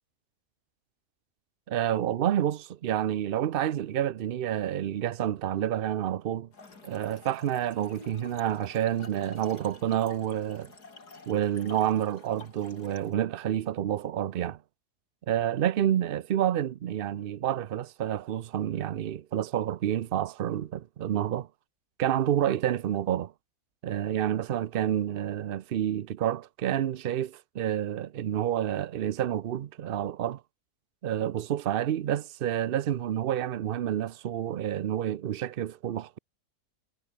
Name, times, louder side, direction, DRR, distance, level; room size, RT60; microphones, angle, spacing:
voice 1, 1.7-6.5 6.8-10.7 11.3-14.6 15.3-21.5 22.0-23.3 23.8-30.4 31.0-36.2, right 11 dB, 90° right, 0.5 m, -29 dB
Trickle dribble / Fill (with liquid), 6.5-13.2, left 3 dB, 75° left, 4.3 m, -50 dB
omnidirectional pair, 1.7 m